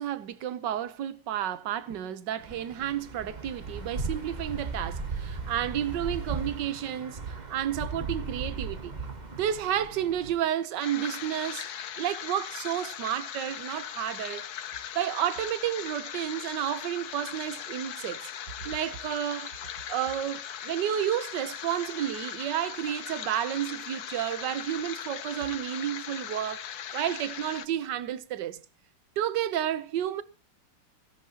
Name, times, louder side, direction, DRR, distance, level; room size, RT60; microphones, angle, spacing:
voice 1, 0.0-8.9 9.3-11.7 12.0-14.5 14.9-18.3 18.6-19.5 19.9-28.6 29.2-30.2, right 10 dB, 75° right, 1.5 m, -31 dB
sound 1, 2.4-10.4, right 3 dB, 25° right, 1.2 m, -37 dB
sound 2, 10.8-27.7, left 9 dB, 65° left, 1.3 m, -39 dB
17.0 x 16.5 x 2.9 m
omnidirectional pair, 1.9 m